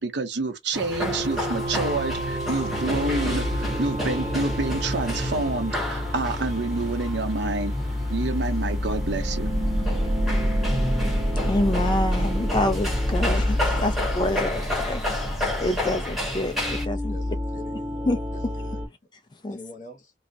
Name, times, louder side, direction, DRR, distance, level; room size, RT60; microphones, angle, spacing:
voice 1, 0.0-7.7 8.1-9.5, right 3 dB, 70° right, 0.7 m, -28 dB
sound 1, 0.7-16.9, left 1 dB, ahead, 0.8 m, -32 dB
sound 2, 0.9-18.9, equal, 40° right, 0.8 m, -28 dB
voice 2, 11.4-15.2 15.6-17.2 18.1-18.5 19.4-19.6, left 1 dB, 25° left, 0.3 m, -27 dB
voice 3, 13.7-15.1 16.7-18.1 18.6-18.8 19.5-20.1, left 2 dB, 45° left, 0.8 m, -45 dB
2.3 x 2.1 x 2.6 m
head